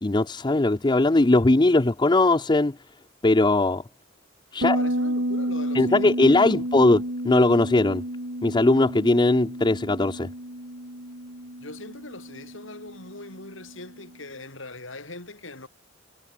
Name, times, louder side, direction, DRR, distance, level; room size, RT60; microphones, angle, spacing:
voice 1, 0.0-2.8 3.2-3.8 4.5-4.8 5.7-7.0 7.3-8.0 8.4-10.3, left 2 dB, 25° left, 0.6 m, -19 dB
voice 2, 4.6-7.0 11.6-15.7, left 2 dB, 80° left, 7.2 m, -41 dB
Bass guitar, 4.6-14.0, right 1 dB, 70° right, 8.0 m, -31 dB
head